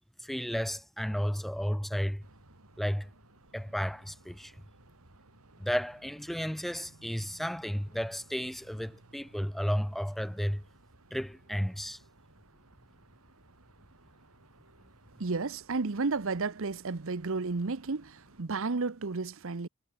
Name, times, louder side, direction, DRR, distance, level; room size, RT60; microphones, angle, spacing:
voice 1, 0.2-2.2 2.8-3.1 3.5-4.5 5.6-10.6 11.1-12.0, equal, ahead, 0.4 m, -33 dB
sound 1, 2.2-18.4, right 2 dB, 80° right, 3.9 m, -59 dB
voice 2, 15.2-19.7, right 4 dB, 65° right, 0.9 m, -32 dB
head